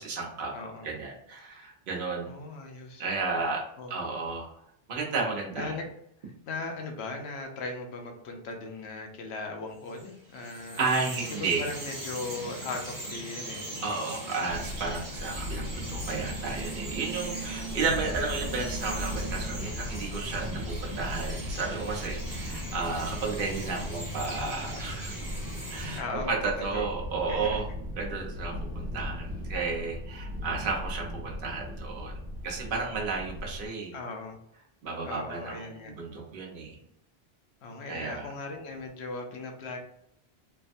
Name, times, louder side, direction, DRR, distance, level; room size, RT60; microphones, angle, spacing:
voice 1, 0.0-0.5 0.8-2.3 3.0-4.5 4.9-5.8 10.8-11.7 13.8-25.1 25.7-26.0 26.3-27.6 27.9-32.1 32.4-33.9 34.8-36.8 37.9-38.3, right 4 dB, 60° right, -1 dB, 0.9 m, -33 dB
voice 2, 0.5-0.9 2.3-3.1 3.8-3.9 5.6-5.8 6.2-10.8 11.6-13.8 19.8-20.0 26.0-26.3 26.7-26.9 27.3-27.6 33.9-34.4 35.0-35.9 37.6-39.8, left 3 dB, 80° left, 3 dB, 0.9 m, -38 dB
Bird vocalization bird call bird song, 9.9-26.0, right 1 dB, 20° right, 1.1 m, -39 dB
sound 1, 14.5-33.7, left 1 dB, 40° right, 1.5 m, -38 dB
3.3 x 2.1 x 2.5 m, 0.74 s
omnidirectional pair, 1.1 m